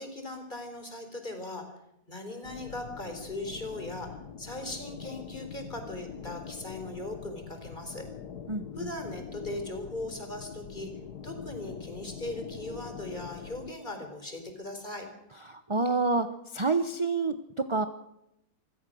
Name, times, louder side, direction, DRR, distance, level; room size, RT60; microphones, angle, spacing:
voice 1, 0.0-1.7 2.1-8.1 8.8-10.9 11.2-15.1, left 2 dB, 25° left, 5 dB, 4.2 m, -39 dB
sound 1, 2.4-13.7, left 7 dB, 65° left, 1.7 m, -43 dB
voice 2, 8.5-8.9 15.4-17.8, right 3 dB, 25° right, 9 dB, 0.7 m, -28 dB
26.0 x 16.5 x 6.4 m, 0.82 s
omnidirectional pair, 1.9 m